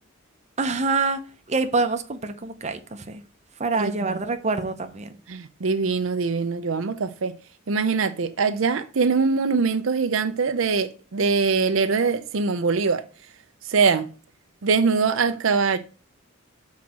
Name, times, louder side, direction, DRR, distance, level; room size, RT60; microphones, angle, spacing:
voice 1, 0.6-1.2 1.5-3.2 3.6-5.1, right 3 dB, 35° right, 0.8 m, -25 dB
voice 2, 3.7-4.2 5.3-7.3 7.7-13.0 13.7-14.1 14.6-15.8, right 4 dB, 75° right, 0.6 m, -23 dB
6.1 x 4.2 x 6.2 m
head